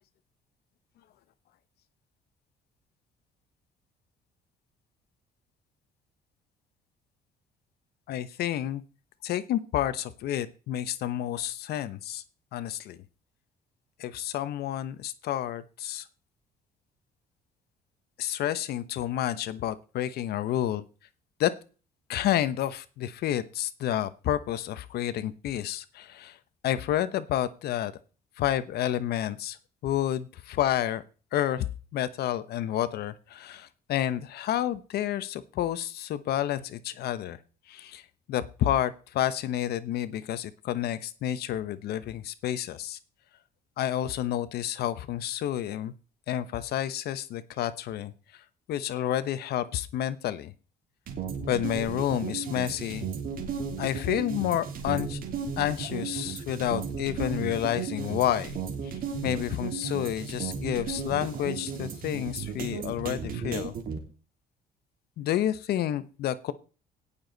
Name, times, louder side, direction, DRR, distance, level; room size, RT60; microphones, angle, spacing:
voice 1, 8.1-8.8 9.2-12.2 12.5-13.0 14.0-16.0 18.2-20.8 21.4-21.5 22.1-26.4 26.6-27.9 28.4-29.6 29.8-31.0 31.3-31.7 31.9-37.4 37.7-38.0 38.3-43.0 43.8-45.9 46.3-48.1 48.7-50.5 51.5-53.1 53.8-55.2 55.6-58.6 59.2-63.7 65.2-66.5, left 11 dB, 70° left, 14 dB, 1.0 m, -30 dB
sound 1, 51.1-64.0, right 6 dB, 60° right, 3.3 m, -35 dB
17.5 x 7.1 x 4.0 m, 0.35 s
cardioid pair, 110°, 17 cm